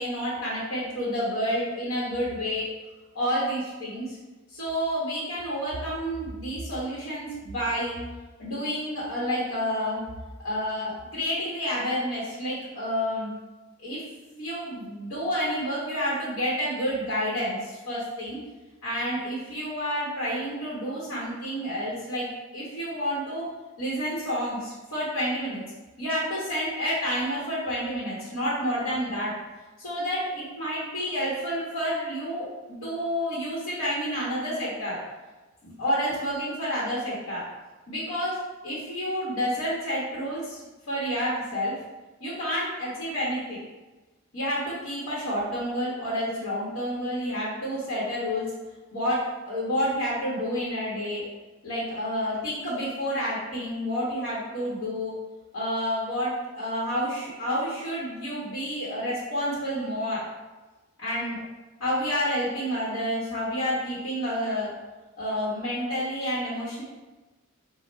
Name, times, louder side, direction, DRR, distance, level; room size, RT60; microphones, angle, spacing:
voice 1, 0.0-2.7 3.1-4.2 4.5-8.0 8.4-10.0 10.4-13.3 13.8-14.0 14.4-18.4 18.8-22.3 22.5-23.5 23.8-25.6 26.0-29.3 29.8-35.0 35.6-37.4 37.9-38.4 38.6-40.6 40.9-41.7 42.2-43.6 44.3-48.5 48.9-51.2 51.6-55.1 55.5-60.2 61.0-61.4 61.8-64.7 65.2-66.8, equal, 70° left, -8 dB, 0.9 m, -29 dB
4.0 x 2.1 x 3.2 m, 1.2 s
head